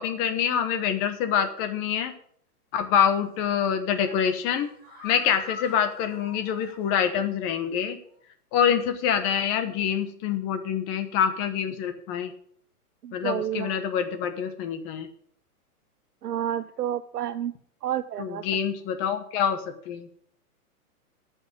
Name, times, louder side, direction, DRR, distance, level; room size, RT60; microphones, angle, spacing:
voice 1, 0.0-2.1 2.7-4.7 5.0-8.0 8.5-12.3 13.1-15.1 18.2-19.6 19.9-20.1, left 8 dB, 30° left, 9 dB, 1.0 m, -26 dB
sound 1, 3.1-3.5 3.9-7.3 7.6-7.7 8.1-8.2, left 4 dB, 20° right, 6.4 m, -45 dB
voice 2, 13.0-13.8 16.2-17.5 17.8-18.5, right 11 dB, 85° right, 11 dB, 0.7 m, -30 dB
13.0 x 5.5 x 7.5 m, 0.62 s
hypercardioid pair, 135°, 46 cm